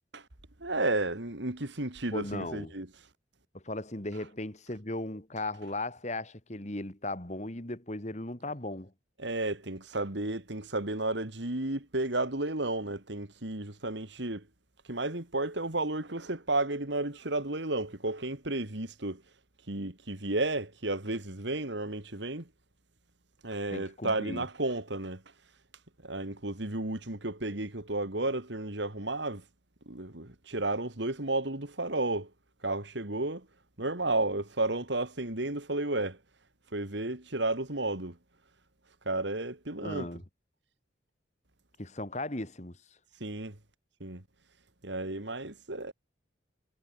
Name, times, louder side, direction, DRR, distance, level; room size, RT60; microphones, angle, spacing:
voice 1, 0.6-2.9 9.2-14.5 14.9-19.2 19.7-22.5 23.4-25.2 26.0-29.4 29.9-32.3 32.6-33.5 33.8-36.2 36.7-38.2 39.0-40.1 43.2-43.6 44.0-44.2 44.8-45.9, right 2 dB, 65° right, 2.7 m, -32 dB
voice 2, 2.1-2.7 3.5-8.9 23.7-24.4 39.8-40.2 41.8-42.8, left 2 dB, 35° left, 2.4 m, -37 dB
head